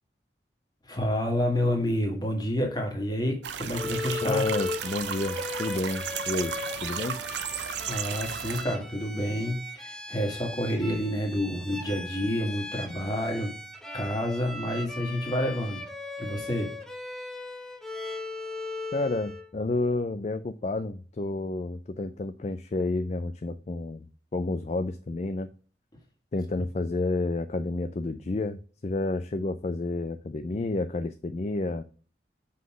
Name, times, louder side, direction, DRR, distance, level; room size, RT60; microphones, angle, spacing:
voice 1, 0.9-4.5 7.9-13.5 13.9-15.8 16.2-16.7, equal, 25° left, 2 dB, 1.8 m, -29 dB
sound 1, 3.4-8.6, right 8 dB, 80° right, 0.5 m, -34 dB
Bowed string instrument, 3.7-19.5, left 2 dB, 5° left, 0.7 m, -38 dB
voice 2, 4.2-6.6 6.8-7.2 18.9-24.1 24.3-25.5 26.3-28.6 28.8-31.8, left 2 dB, 40° left, 9 dB, 0.4 m, -30 dB
5.7 x 3.9 x 6.1 m, 0.40 s
head